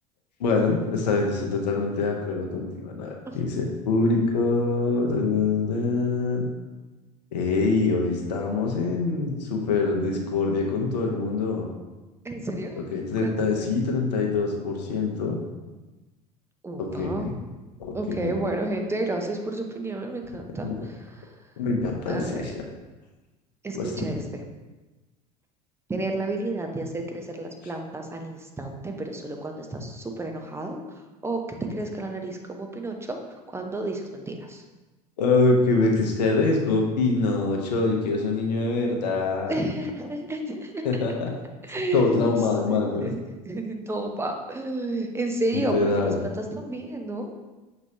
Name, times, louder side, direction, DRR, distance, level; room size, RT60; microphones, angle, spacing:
voice 1, 0.4-6.4 7.3-11.7 12.9-15.4 16.8-17.4 17.8-18.4 20.6-20.9 21.6-22.5 23.7-23.9 35.2-39.6 40.8-41.3 41.9-43.1 45.7-46.2, left 3 dB, 75° left, 1 dB, 0.7 m, -24 dB
voice 2, 12.2-12.8 13.2-13.7 16.6-17.3 17.9-21.3 22.1-22.5 23.6-24.4 25.9-30.8 31.2-31.4 31.7-34.6 39.5-40.8 41.6-42.3 42.7-47.3, right 2 dB, 10° right, 3 dB, 0.6 m, -31 dB
5.9 x 3.0 x 2.8 m, 1.2 s
hypercardioid pair, 75°, 21 cm